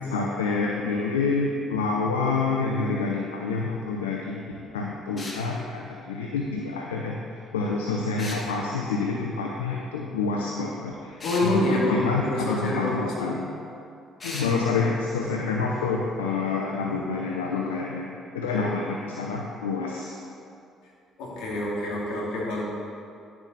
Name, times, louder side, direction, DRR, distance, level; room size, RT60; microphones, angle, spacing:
voice 1, 0.1-4.4 4.7-13.5 14.2-18.1 18.3-20.2, left 4 dB, 90° left, -1 dB, 0.6 m, -28 dB
sound 1, 5.2-5.4 8.2-8.5 11.2-11.5 14.2-14.5, left 2 dB, 35° left, 2.0 m, -36 dB
voice 2, 11.2-13.3 16.8-16.9 18.5-18.7 21.2-22.6, left 1 dB, 75° left, -5 dB, 2.4 m, -27 dB
11.0 x 7.7 x 4.1 m, 2.5 s
hypercardioid pair, 50°, 0 cm